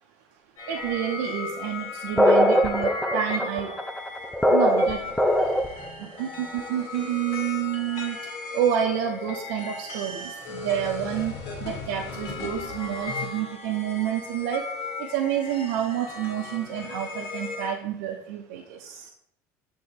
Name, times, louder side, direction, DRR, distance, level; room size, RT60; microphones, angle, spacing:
sound 1, 0.6-17.7, left 3 dB, 70° left, 2.0 m, -36 dB
voice 1, 0.7-3.7 4.5-5.0 6.0-8.2 8.5-11.3 11.6-14.6 15.1-18.9, right 10 dB, 85° right, 0 dB, 0.6 m, -29 dB
sound 2, 2.2-5.9, left 1 dB, 5° left, 0.5 m, -21 dB
6.7 x 3.7 x 4.2 m, 0.74 s
supercardioid pair, 90°, 8 cm